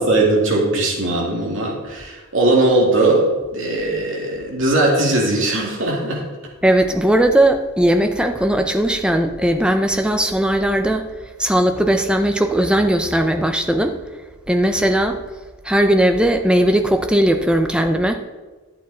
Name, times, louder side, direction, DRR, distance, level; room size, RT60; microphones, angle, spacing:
voice 1, 0.0-6.2, right 2 dB, 60° right, -2 dB, 2.8 m, -19 dB
voice 2, 6.6-11.1 11.4-14.0 14.5-15.2 15.6-18.2, right 1 dB, 5° right, 6 dB, 0.6 m, -18 dB
11.5 x 8.6 x 4.4 m, 1.3 s
head